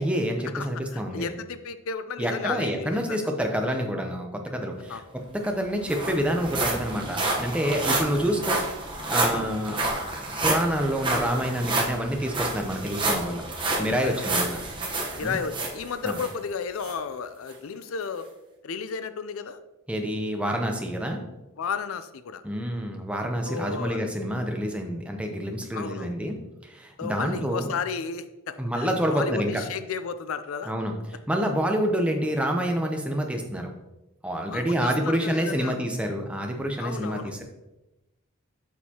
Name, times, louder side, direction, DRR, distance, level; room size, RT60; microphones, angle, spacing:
voice 1, 0.0-1.3 2.2-8.6 9.1-9.8 10.4-13.4 13.8-14.6 15.2-15.4 16.0-16.2 19.9-21.2 22.4-26.4 26.6-27.7 28.6-29.6 30.7-33.7 34.2-37.4, equal, 5° right, 2 dB, 0.6 m, -27 dB
voice 2, 0.5-3.2 4.9-5.0 7.6-8.2 9.3-9.5 13.6-14.7 15.1-18.3 18.6-19.6 21.6-22.4 23.4-24.0 25.7-26.2 27.0-30.7 34.5-35.7 36.8-37.4, left 6 dB, 80° left, 12 dB, 0.5 m, -33 dB
sound 1, 5.1-5.2 5.4-16.3 16.8-16.9 17.5-17.6, right 2 dB, 20° right, 1.0 m, -29 dB
7.1 x 6.5 x 2.9 m, 1.0 s
head